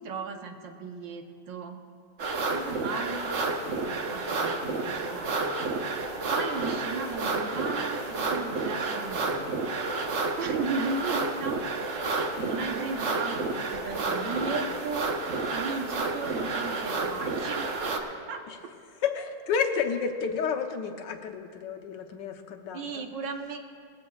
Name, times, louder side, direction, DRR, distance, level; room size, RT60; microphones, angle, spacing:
voice 1, 0.0-1.8 2.5-3.3 3.6-9.6 10.4-11.6 12.0-15.1 15.5-18.4 22.7-23.6, right 4 dB, 80° right, 4 dB, 1.7 m, -36 dB
sound 1, 2.2-18.0, right 3 dB, 50° right, 1.0 m, -30 dB
voice 2, 19.0-23.0, left 6 dB, 75° left, 4 dB, 1.5 m, -30 dB
19.5 x 15.0 x 2.3 m, 2.3 s
omnidirectional pair, 2.0 m